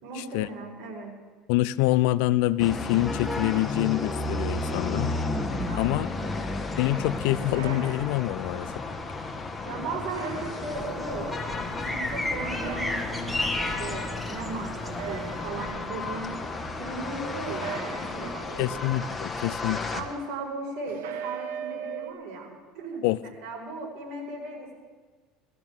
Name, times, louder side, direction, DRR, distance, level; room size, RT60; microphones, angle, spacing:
voice 1, 0.0-1.1 5.7-6.5 9.6-16.3 16.7-18.9 19.9-24.7, right 3 dB, 65° right, -2 dB, 5.1 m, -37 dB
voice 2, 1.5-5.1 5.8-6.1 6.8-8.7 18.6-19.8 23.0-23.2, left 16 dB, 75° left, 18 dB, 0.4 m, -25 dB
sound 1, 2.6-20.0, left 3 dB, 20° left, 1.4 m, -33 dB
sound 2, 7.4-8.6 10.0-11.1 12.4-13.4 14.8-16.0 17.4-18.8 20.9-22.1, right 7 dB, 90° right, 1.2 m, -39 dB
sound 3, 10.7-15.8, left 1 dB, 5° left, 1.4 m, -34 dB
21.0 x 13.5 x 3.7 m, 1.4 s
supercardioid pair, 105°, 0 cm